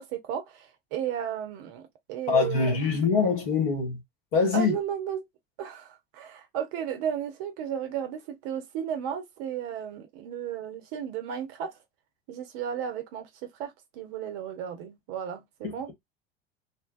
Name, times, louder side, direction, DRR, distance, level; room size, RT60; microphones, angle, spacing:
voice 1, 0.0-2.8 4.5-5.2 5.6-11.7 12.3-13.3 13.6-15.9, right 9 dB, 45° right, 0.5 m, -34 dB
voice 2, 2.3-4.0 4.3-4.7 15.6-15.7, left 5 dB, 55° left, 1.2 m, -24 dB
2.9 x 2.2 x 2.2 m
figure-of-eight pair, 75°, 31 cm